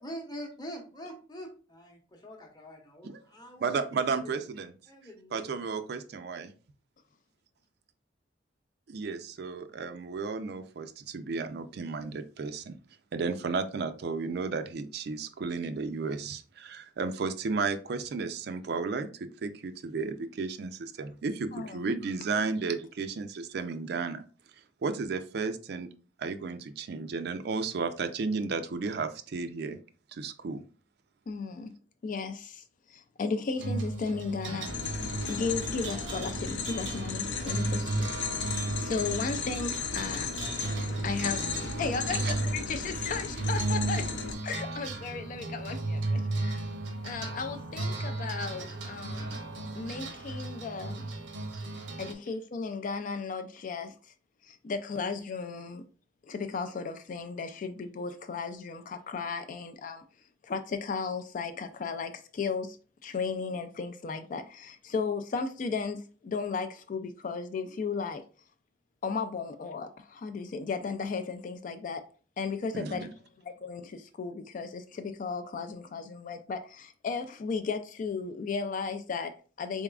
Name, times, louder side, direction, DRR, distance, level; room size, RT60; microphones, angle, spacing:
voice 1, 0.0-4.5 4.9-5.5, equal, 25° left, 0.8 m, -44 dB
voice 2, 3.6-4.7 5.3-6.5 8.9-12.7 13.1-24.2 24.8-25.9 26.2-29.8 30.1-30.6 42.1-42.4 72.7-73.1, right 4 dB, 60° right, 0.4 m, -33 dB
voice 3, 21.5-21.9 31.3-31.7 32.0-32.6 32.9-34.7 35.3-38.1 38.8-40.3 41.0-44.1 44.4-46.6 47.0-49.4 49.7-51.1 52.0-53.9 54.4-55.8 56.3-60.0 60.4-62.8 63.0-68.2 69.0-72.0 72.4-73.1 73.4-79.8, left 4 dB, 45° left, 0.3 m, -35 dB
sound 1, 33.6-52.1, right 2 dB, 85° right, 0.8 m, -35 dB
sound 2, 34.7-44.3, left 5 dB, 85° left, 0.6 m, -35 dB
3.9 x 3.5 x 2.3 m
head